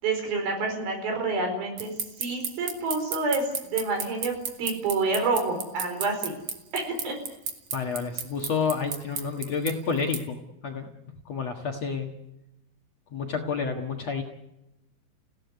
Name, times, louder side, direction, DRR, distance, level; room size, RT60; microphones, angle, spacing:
voice 1, 0.0-1.9 2.2-4.3 4.6-6.3 6.7-7.1, right 3 dB, 65° right, 3 dB, 6.4 m, -28 dB
sound 1, 1.8-10.2, right 7 dB, 50° right, 2.3 m, -31 dB
voice 2, 7.7-10.9 11.3-12.1 13.1-14.2, left 5 dB, 50° left, 2 dB, 2.2 m, -29 dB
29.5 x 17.0 x 9.6 m, 0.93 s
omnidirectional pair, 4.6 m